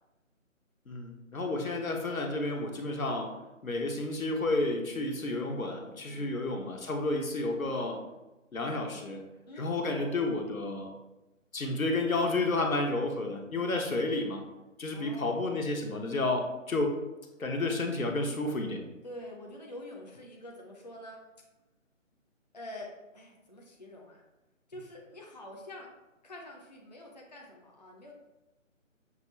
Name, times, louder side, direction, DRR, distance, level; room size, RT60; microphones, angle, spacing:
voice 1, 0.9-8.0 8.5-9.2 9.6-10.9 11.5-14.4 14.8-17.0 17.4-18.8, left 2 dB, 90° left, 2 dB, 0.9 m, -31 dB
voice 2, 9.5-10.2 14.2-14.4 14.9-15.4 19.0-21.2 22.5-24.2 24.7-25.9 26.2-28.1, left 1 dB, 35° left, -1 dB, 0.4 m, -46 dB
5.9 x 2.4 x 3.0 m, 1.0 s
figure-of-eight pair, 150°, 40 cm